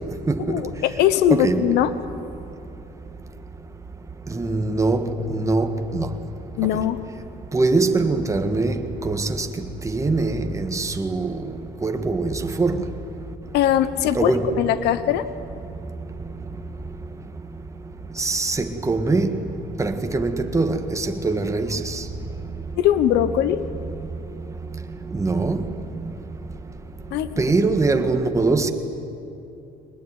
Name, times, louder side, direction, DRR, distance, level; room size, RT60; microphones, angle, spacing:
voice 1, 0.5-1.9 6.6-7.0 13.5-14.3 14.6-15.3 22.8-23.7 27.1-27.3, left 11 dB, 85° left, 13 dB, 1.0 m, -20 dB
voice 2, 1.3-1.7 4.3-6.1 7.5-8.8 9.0-9.5 9.9-11.3 11.8-12.8 14.2-14.5 18.2-19.3 19.8-22.0 25.1-25.7 27.4-28.7, right 3 dB, 20° right, 6 dB, 1.7 m, -22 dB
22.5 x 20.0 x 9.6 m, 2.7 s
cardioid pair, 110°, 17 cm